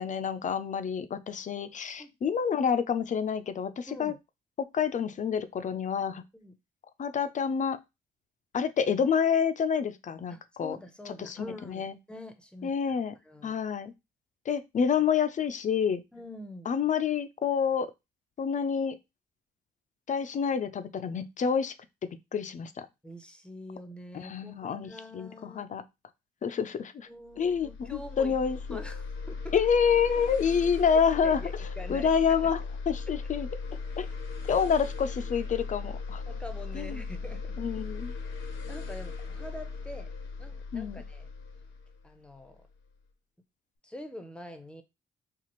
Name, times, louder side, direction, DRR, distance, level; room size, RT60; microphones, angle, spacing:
voice 1, 0.0-4.1 4.6-6.2 7.0-7.8 8.5-10.8 11.2-11.4 11.7-11.9 12.6-13.1 13.4-13.9 14.5-16.0 16.7-17.9 18.4-19.0 20.1-21.7 22.3-22.9 24.1-25.8 26.4-27.1 27.4-28.8 29.5-31.4 31.9-33.5 34.0-34.1 34.5-36.2 36.7-37.0 37.6-38.1 40.7-41.0, left 7 dB, 40° left, 0.4 m, -28 dB
voice 2, 3.9-4.2 6.3-6.5 10.3-13.6 16.1-16.7 23.0-25.6 27.1-29.6 30.9-32.5 33.1-33.2 36.3-37.6 38.7-40.1 40.4-41.3 42.0-42.6 43.8-44.8, left 1 dB, 5° left, 0.7 m, -45 dB
sound 1, 27.3-42.8, left 4 dB, 80° left, 0.7 m, -38 dB
4.1 x 2.4 x 3.0 m
cardioid pair, 90°, 20 cm